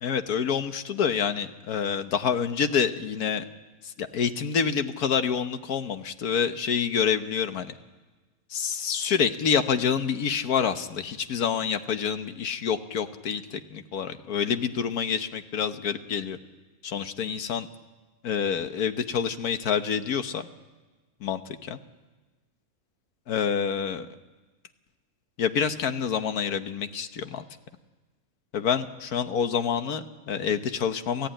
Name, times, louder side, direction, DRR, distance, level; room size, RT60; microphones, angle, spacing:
voice 1, 0.0-3.4 3.8-7.7 8.5-16.4 16.8-17.7 18.2-20.5 21.2-21.8 23.3-24.1 25.4-27.4 28.5-31.3, left 7 dB, 80° left, 9 dB, 1.6 m, -27 dB
27.5 x 15.0 x 9.0 m, 1.2 s
omnidirectional pair, 1.6 m